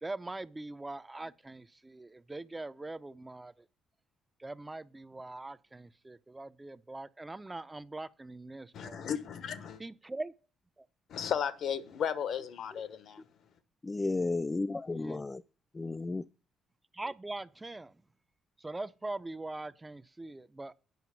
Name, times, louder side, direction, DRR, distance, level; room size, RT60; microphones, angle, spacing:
voice 1, 0.0-3.5 4.4-9.1 9.8-10.3 15.0-15.2 16.9-17.9 18.6-20.7, right 2 dB, 20° right, 0.6 m, -42 dB
voice 2, 8.7-9.8 11.1-13.2, left 8 dB, 65° left, 1.0 m, -35 dB
voice 3, 13.8-15.4 15.7-16.2, left 3 dB, 25° left, 0.4 m, -33 dB
9.3 x 5.7 x 5.8 m
hypercardioid pair, 50°, 0 cm